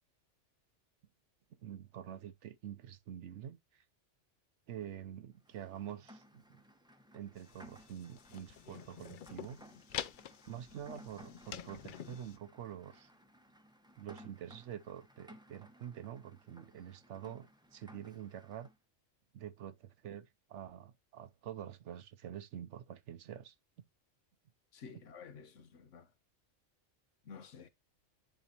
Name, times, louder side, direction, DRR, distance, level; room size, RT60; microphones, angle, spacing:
voice 1, 1.6-3.6 4.7-6.6 7.1-9.6 10.5-13.1 14.0-18.7 19.3-23.5, right 10 dB, 70° right, 1.0 m, -47 dB
Rain, 5.4-18.8, equal, 5° right, 0.7 m, -59 dB
sound 1, 7.4-12.4, left 9 dB, 60° left, 0.6 m, -47 dB
voice 2, 24.7-26.1 27.2-27.7, left 6 dB, 75° left, 1.3 m, -51 dB
10.5 x 3.9 x 2.9 m
omnidirectional pair, 1.3 m